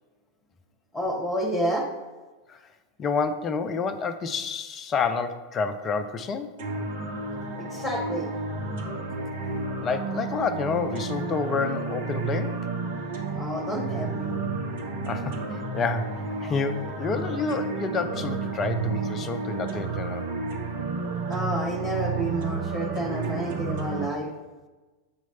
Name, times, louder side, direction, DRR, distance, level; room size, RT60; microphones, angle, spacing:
voice 1, 0.9-1.9 7.6-8.3 13.4-14.4 21.3-24.3, right 1 dB, 10° left, 2 dB, 1.4 m, -30 dB
voice 2, 3.0-6.5 9.5-12.6 15.1-20.3, left 5 dB, 25° left, 10 dB, 0.5 m, -29 dB
sound 1, 6.6-24.0, right 3 dB, 55° right, 0.9 m, -31 dB
7.0 x 3.0 x 5.5 m, 1.2 s
figure-of-eight pair, 90°, 0 cm